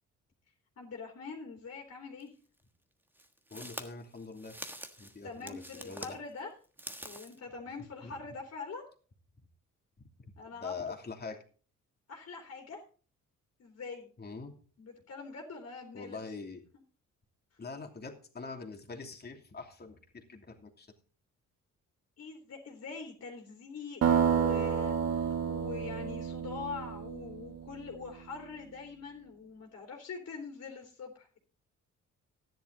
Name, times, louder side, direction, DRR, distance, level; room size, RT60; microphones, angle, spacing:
voice 1, 0.8-2.3 5.2-6.5 7.0-8.8 10.4-10.9 12.1-12.8 13.6-14.1 14.8-16.2 22.2-31.4, left 5 dB, 55° left, 1 dB, 3.2 m, -44 dB
sound 1, 2.2-2.3 3.2-6.2 6.6-7.4, right 1 dB, 5° right, 1.4 m, -45 dB
voice 2, 3.5-4.6 5.0-6.2 8.0-8.1 10.0-10.1 10.5-11.4 14.2-14.5 15.9-16.6 17.6-20.9, left 4 dB, 35° left, 3 dB, 2.9 m, -44 dB
sound 2, 24.0-27.8, right 8 dB, 55° right, 1.3 m, -30 dB
13.0 x 10.5 x 4.0 m, 0.40 s
cardioid pair, 90°, 30 cm